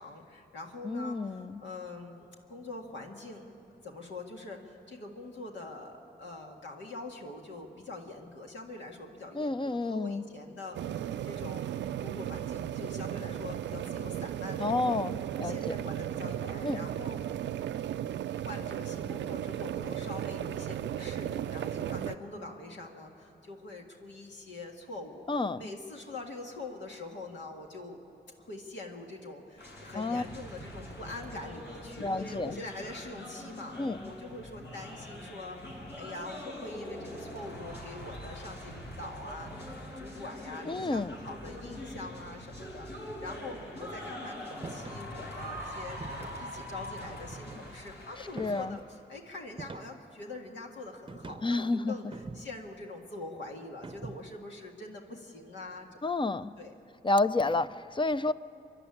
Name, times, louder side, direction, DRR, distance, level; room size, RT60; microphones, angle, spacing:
voice 1, 0.0-3.5 3.8-10.8 11.2-15.0 15.4-17.2 18.4-28.0 28.4-33.8 34.1-42.9 43.2-46.0 46.4-56.0 56.6-56.8, left 2 dB, 85° left, 1 dB, 1.9 m, -44 dB
voice 2, 0.8-1.6 9.3-10.2 14.6-15.7 16.6-16.9 25.3-25.7 29.9-30.2 32.0-32.6 33.8-34.0 40.7-41.2 48.4-48.8 51.4-52.0 56.0-56.5 57.0-58.3, left 2 dB, 25° left, 13 dB, 0.6 m, -30 dB
sound 1, 10.7-22.2, right 11 dB, 85° right, 0.4 m, -35 dB
sound 2, 29.6-48.6, equal, 65° left, 7.0 m, -43 dB
sound 3, 44.6-45.1 46.0-46.5 47.3-47.9 48.4-48.8 49.6-50.2 51.1-51.6 52.1-52.7 53.8-54.4, right 3 dB, 25° right, 0.7 m, -45 dB
24.0 x 11.5 x 9.8 m, 2.8 s
cardioid pair, 50°, 18 cm